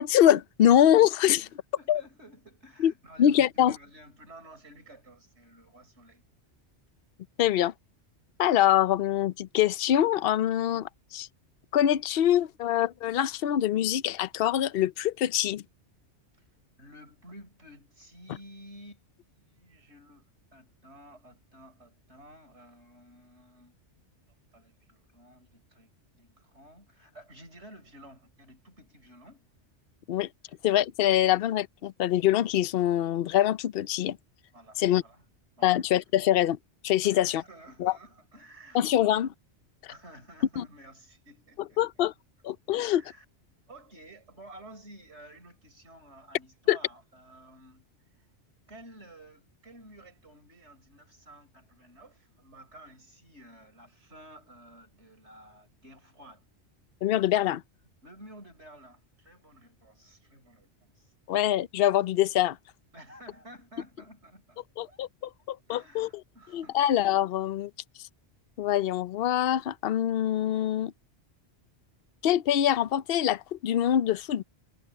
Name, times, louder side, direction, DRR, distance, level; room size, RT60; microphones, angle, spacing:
voice 1, 0.0-1.5 1.9-2.0 2.8-2.9 3.2-3.7 7.4-7.7 8.4-11.3 11.7-15.6 30.1-30.3 30.6-34.2 34.8-35.0 35.6-36.6 36.8-37.4 37.8-37.9 38.7-39.3 40.6-40.7 41.8-42.1 42.4-43.0 46.7-46.8 57.0-57.6 61.3-62.6 64.8-65.1 65.5-66.1 66.5-67.7 68.6-70.9 72.2-74.4, left 11 dB, 60° left, 0.8 m, -24 dB
voice 2, 1.4-6.2 16.8-20.3 20.5-23.7 24.5-29.5 30.5-30.6 34.5-35.2 35.6-35.8 37.0-39.1 39.9-41.8 42.7-43.2 43.7-47.9 48.2-48.3 48.7-56.4 58.0-61.1 62.9-65.0 65.7-66.8, right 1 dB, 75° right, 6.3 m, -52 dB
omnidirectional pair, 1.2 m